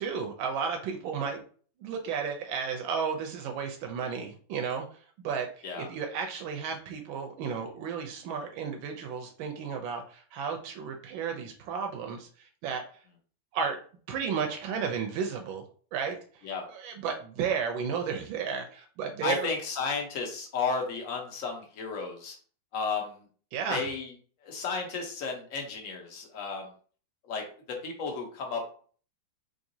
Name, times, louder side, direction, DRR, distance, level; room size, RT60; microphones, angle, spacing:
voice 1, 0.0-1.4 1.8-5.0 5.2-12.8 13.5-13.8 14.1-15.6 15.9-19.5 23.5-23.9, right 6 dB, 90° right, 3 dB, 1.4 m, -33 dB
voice 2, 19.2-22.4 22.7-23.2 23.7-24.1 24.4-26.7 27.2-28.8, left 4 dB, 55° left, 2 dB, 1.1 m, -33 dB
3.7 x 3.3 x 2.6 m, 0.43 s
omnidirectional pair, 2.1 m